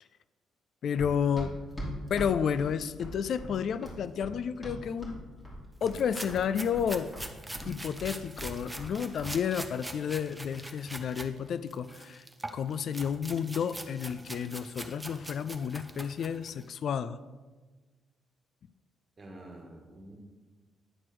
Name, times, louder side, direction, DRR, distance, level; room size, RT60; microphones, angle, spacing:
voice 1, 0.8-1.5 2.1-5.2 5.8-7.1 7.7-12.3 12.5-17.2, left 7 dB, 65° left, 14 dB, 0.4 m, -31 dB
Run, 1.0-5.2 5.5-6.0 6.3-8.9 9.2-9.4, equal, 20° left, 2.8 m, -40 dB
sound 1, 5.8-11.3 11.7-16.6, right 1 dB, 10° right, 0.8 m, -43 dB
voice 2, 19.2-20.2, right 1 dB, 30° right, 1 dB, 2.0 m, -48 dB
9.9 x 4.5 x 6.1 m, 1.3 s
cardioid pair, 90°, 0 cm